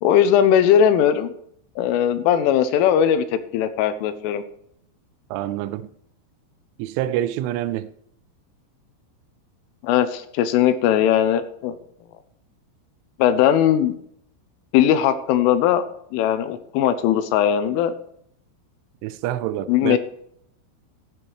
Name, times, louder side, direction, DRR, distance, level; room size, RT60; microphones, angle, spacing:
voice 1, 0.0-1.3 1.8-3.2 3.5-4.4 9.8-11.8 13.2-13.9 14.7-15.8 16.1-17.9 19.7-20.0, left 9 dB, 85° left, 3.1 m, -19 dB
voice 2, 5.3-5.9 6.8-7.9 19.0-20.0, right 13 dB, 80° right, 2.9 m, -26 dB
15.5 x 10.0 x 3.1 m
omnidirectional pair, 5.8 m